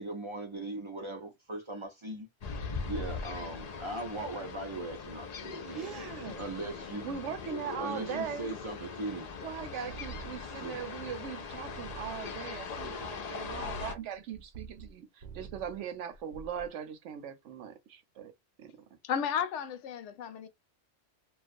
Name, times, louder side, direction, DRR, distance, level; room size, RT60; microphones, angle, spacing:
voice 1, 0.0-2.3 2.8-5.8 6.4-7.2 7.8-9.3 10.6-10.8, right 2 dB, 50° right, 0.3 m, -39 dB
sound 1, 2.4-13.9, left 5 dB, 55° left, 0.4 m, -40 dB
sound 2, 5.6-6.6 7.4-9.1, equal, ahead, 0.7 m, -60 dB
voice 2, 5.7-6.5 7.0-8.5 9.4-18.3 18.6-18.7, right 8 dB, 85° right, 1.0 m, -40 dB
sound 3, 9.9-11.4 11.6-14.9 15.2-15.8 16.1-16.7, right 6 dB, 65° right, 0.7 m, -48 dB
voice 3, 19.0-20.5, left 8 dB, 85° left, 0.9 m, -33 dB
2.4 x 2.3 x 2.4 m
omnidirectional pair, 1.2 m